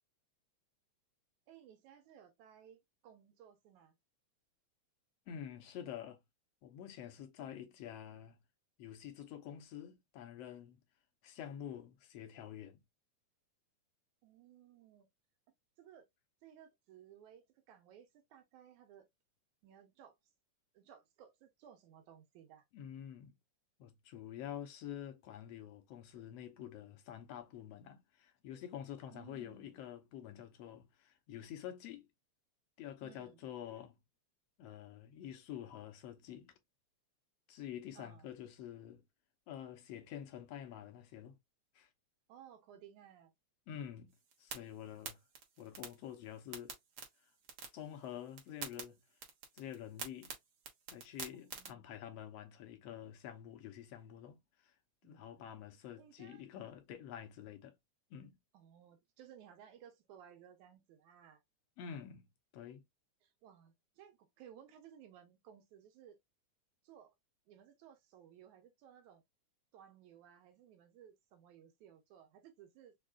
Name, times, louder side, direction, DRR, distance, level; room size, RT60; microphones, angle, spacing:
voice 1, 1.5-4.0 7.4-7.9 14.2-15.1 15.8-16.1 16.4-19.1 19.6-20.2 20.7-22.7 29.1-29.8 33.0-33.5 38.0-38.3 42.3-43.3 51.3-51.9 55.0-55.5 56.0-56.4 58.5-61.4 63.2-66.2 66.8-67.1 67.5-69.2 69.7-73.0, right 9 dB, 85° right, 2.3 m, -59 dB
voice 2, 5.3-6.2 6.6-8.4 8.8-10.8 11.2-12.8 22.7-23.4 23.8-32.1 32.8-34.0 34.6-36.5 37.5-39.0 39.5-41.4 41.7-41.9 43.7-44.1 44.4-45.2 45.6-46.8 47.7-49.0 49.5-50.3 50.9-54.4 55.0-57.7 58.1-58.4 61.8-62.3 62.5-62.8, left 10 dB, 70° left, 1.7 m, -48 dB
sound 1, 44.1-51.7, right 6 dB, 60° right, 1.6 m, -50 dB
5.2 x 2.3 x 2.4 m
omnidirectional pair, 3.3 m